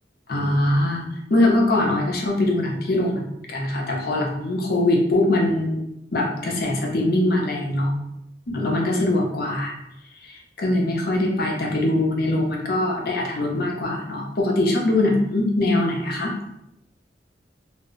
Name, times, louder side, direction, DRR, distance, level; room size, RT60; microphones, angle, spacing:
voice 1, 0.3-3.2 3.5-5.8 6.1-7.9 8.5-9.7 10.2-16.3, left 1 dB, 60° left, -1 dB, 0.6 m, -22 dB
2.1 x 2.0 x 3.7 m, 0.81 s
head